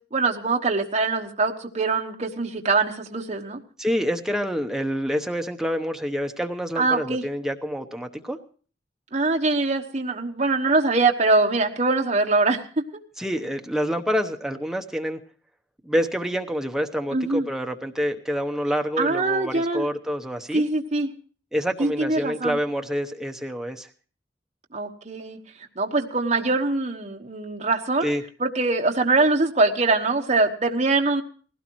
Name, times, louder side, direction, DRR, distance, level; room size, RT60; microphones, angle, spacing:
voice 1, 0.1-3.6 6.8-7.2 9.1-12.6 17.1-17.5 19.0-19.9 20.5-21.1 21.8-22.6 24.7-25.4 25.8-28.1 28.4-31.2, right 3 dB, 40° right, 2 dB, 1.2 m, -23 dB
voice 2, 3.8-8.4 13.2-15.2 15.8-20.6 21.5-23.9 28.0-28.2, equal, 5° right, 5 dB, 0.8 m, -27 dB
19.5 x 16.5 x 3.0 m, 0.40 s
head